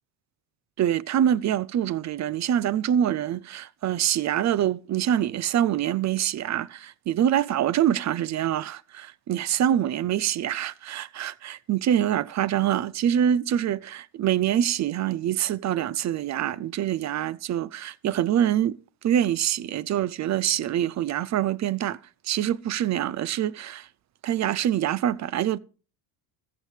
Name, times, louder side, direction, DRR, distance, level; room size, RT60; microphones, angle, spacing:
voice 1, 0.8-18.8 19.0-22.0 22.2-23.9 24.2-25.6, right 10 dB, 40° right, 0.5 m, -25 dB
14.5 x 14.0 x 3.3 m
supercardioid pair, 85°, 45 cm